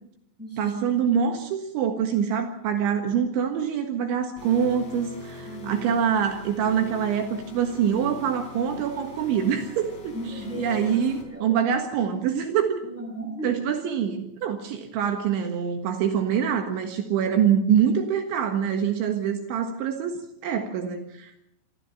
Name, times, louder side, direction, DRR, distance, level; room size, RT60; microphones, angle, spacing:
voice 1, 0.6-12.8 13.4-21.3, right 8 dB, 75° right, 6 dB, 3.9 m, -25 dB
sound 1, 4.4-11.2, left 3 dB, 40° left, 5.0 m, -43 dB
voice 2, 5.4-6.0 10.1-11.5 12.9-13.5, equal, 5° right, 0 dB, 7.0 m, -36 dB
28.0 x 13.5 x 7.3 m, 0.76 s
omnidirectional pair, 5.5 m